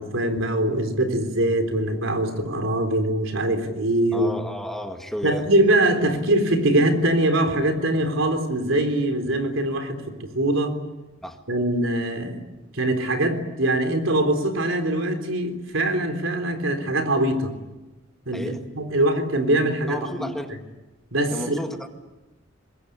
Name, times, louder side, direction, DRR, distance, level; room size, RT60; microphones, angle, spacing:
voice 1, 0.0-4.3 5.2-10.8 11.5-12.4 12.7-17.5 18.3-20.3 21.1-21.6, right 1 dB, 75° right, 6 dB, 3.8 m, -23 dB
voice 2, 4.1-5.5 11.2-11.4 18.3-18.7 19.9-20.6 21.3-21.9, equal, ahead, 4 dB, 1.9 m, -32 dB
24.5 x 21.5 x 10.0 m, 1.1 s
head